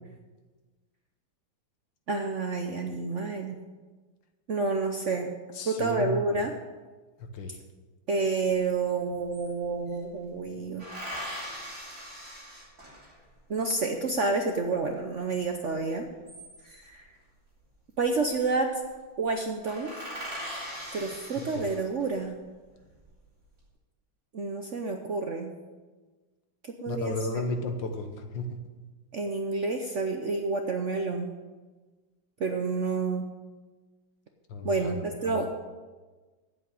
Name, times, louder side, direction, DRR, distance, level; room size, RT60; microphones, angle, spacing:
voice 1, 2.1-3.6 4.5-5.3 5.7-6.5 8.1-10.9 13.5-16.0 16.6-17.1 18.0-18.7 19.2-19.9 20.9-22.4 24.3-25.5 26.8-27.1 29.1-31.3 32.4-33.3 34.6-35.5, right 3 dB, 60° right, 4 dB, 0.8 m, -29 dB
voice 2, 5.5-6.4 7.2-7.6 21.5-21.7 26.9-28.5 34.5-35.5, left 2 dB, 70° left, 6 dB, 1.8 m, -34 dB
sound 1, 8.7-8.8 9.0-10.0 10.8-13.3 16.0-17.0 18.1-18.5 18.8-18.9 19.3-19.4 19.6-22.2 22.8-23.4, equal, 35° right, 3.5 m, -41 dB
8.4 x 8.0 x 8.8 m, 1.3 s
omnidirectional pair, 2.2 m